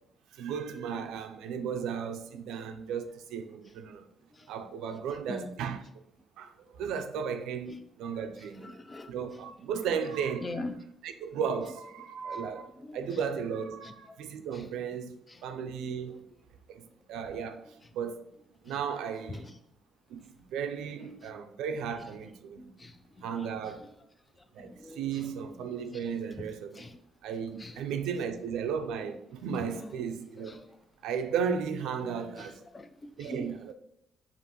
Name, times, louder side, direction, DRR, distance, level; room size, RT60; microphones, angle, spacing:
voice 1, 0.3-4.1 4.5-5.8 6.4-8.7 9.1-10.5 11.0-16.3 16.7-16.8 17.1-17.7 17.9-18.2 18.6-19.5 20.1-20.2 20.5-22.7 23.2-23.9 24.5-26.9 27.2-30.6 31.0-32.6 33.2-33.7, right 7 dB, 85° right, 0.4 m, -35 dB
voice 2, 8.6-9.1 10.4-10.8 12.8-13.2 13.8-13.9 14.5-14.7 15.3-15.4 16.1-16.2 18.7-18.8 19.3-19.5 21.0-21.1 22.2-22.3 22.6-23.9 24.6-25.3 25.6-26.5 26.7-27.0 27.6-27.8 29.5-29.9 30.4-30.7 31.9-33.6, left 2 dB, 20° left, 0.4 m, -44 dB
5.2 x 2.5 x 2.9 m
cardioid pair, 100°, 0 cm